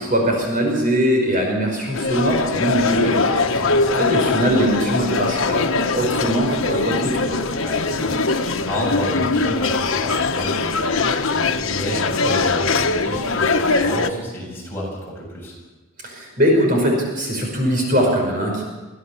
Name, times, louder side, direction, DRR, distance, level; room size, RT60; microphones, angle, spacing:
voice 1, 0.0-3.2 3.5-3.7 3.9-7.4 16.0-18.6, equal, 40° right, 0 dB, 5.1 m, -21 dB
sound 1, 1.9-14.1, left 3 dB, 85° left, 1.2 m, -21 dB
voice 2, 3.1-3.8 7.6-15.5, equal, 10° left, -4 dB, 7.6 m, -31 dB
23.5 x 16.0 x 7.2 m, 1.2 s
head